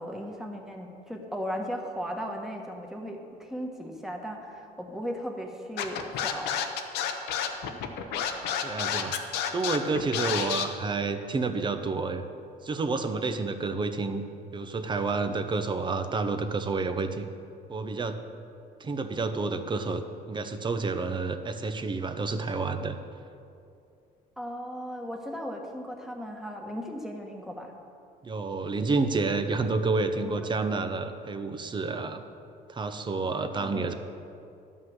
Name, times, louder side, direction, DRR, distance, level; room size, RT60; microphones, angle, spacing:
voice 1, 0.0-6.6 24.4-27.7 30.2-30.7 33.5-33.9, equal, ahead, 1 dB, 1.4 m, -37 dB
Scratching (performance technique), 5.8-10.6, left 8 dB, 90° left, 0.9 m, -29 dB
voice 2, 8.6-9.2 9.5-12.2 12.6-14.2 14.5-17.2 17.7-18.2 18.8-20.0 20.3-23.0 28.2-32.2 32.7-33.9, right 3 dB, 25° right, 8 dB, 0.8 m, -29 dB
11.5 x 5.6 x 7.9 m, 2.5 s
cardioid pair, 110°, 17 cm